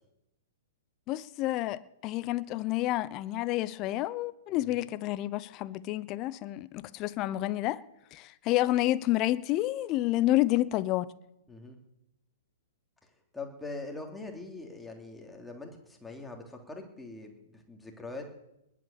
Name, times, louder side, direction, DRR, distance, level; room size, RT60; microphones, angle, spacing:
voice 1, 1.1-7.8 8.1-11.1, left 16 dB, 30° left, 0.7 m, -29 dB
voice 2, 13.3-18.3, left 3 dB, 5° left, 3.1 m, -43 dB
20.0 x 8.5 x 7.2 m
figure-of-eight pair, 115°, 0 cm